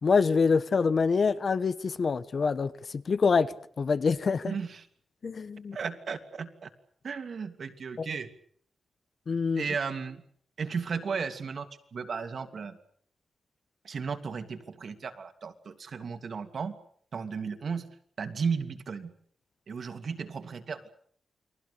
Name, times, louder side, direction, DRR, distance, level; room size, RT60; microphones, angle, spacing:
voice 1, 0.0-4.5 5.2-5.8 8.0-8.1 9.3-9.6, left 5 dB, 45° left, 1.1 m, -26 dB
voice 2, 4.4-4.9 5.7-6.7 7.0-8.3 9.5-10.2 10.6-12.8 13.8-16.8 17.1-17.9 18.2-19.1 19.7-20.9, right 5 dB, 50° right, 2.7 m, -35 dB
30.0 x 23.0 x 6.9 m
wide cardioid pair, 155°, 0 cm